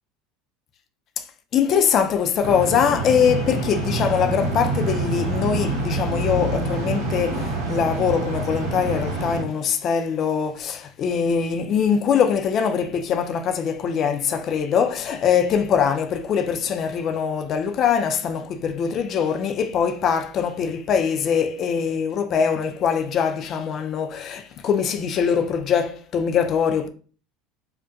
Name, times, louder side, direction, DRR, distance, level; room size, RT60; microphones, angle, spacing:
voice 1, 1.5-26.9, left 7 dB, 45° left, 0.4 m, -22 dB
sound 1, 2.4-9.4, right 2 dB, 85° right, 0.8 m, -26 dB
2.3 x 2.1 x 2.7 m
supercardioid pair, 90°, 0 cm